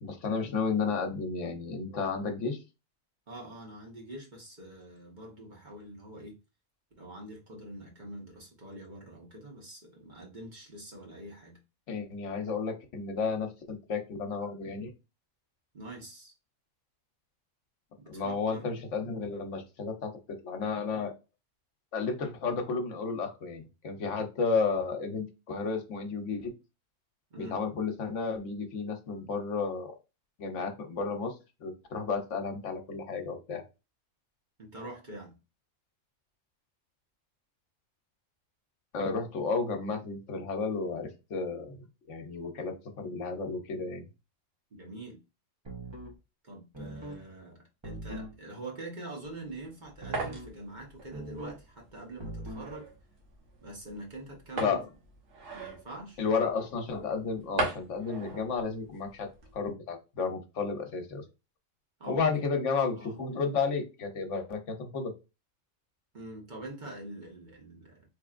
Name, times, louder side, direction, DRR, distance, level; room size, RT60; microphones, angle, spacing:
voice 1, 0.0-2.6 11.9-14.9 18.1-20.1 20.4-21.1 21.9-26.5 27.4-29.9 30.4-33.6 38.9-44.0 54.6-54.8 56.2-59.3 59.5-61.2 62.1-65.1, left 4 dB, 70° left, 1.1 m, -32 dB
voice 2, 3.3-6.4 7.0-11.6 15.7-16.3 18.0-18.7 27.3-27.6 34.6-35.4 44.7-45.2 46.4-52.9 53.6-54.8 55.5-56.2 62.0-62.3 62.9-63.2 66.1-68.1, right 1 dB, 40° right, 1.2 m, -45 dB
sound 1, 45.6-46.2 46.7-47.2 47.8-48.4 50.0-50.5 51.1-51.6 52.2-52.7, right 1 dB, 25° right, 0.9 m, -41 dB
sound 2, 49.2-59.7, right 3 dB, 85° right, 1.4 m, -41 dB
4.2 x 3.1 x 2.4 m
omnidirectional pair, 1.3 m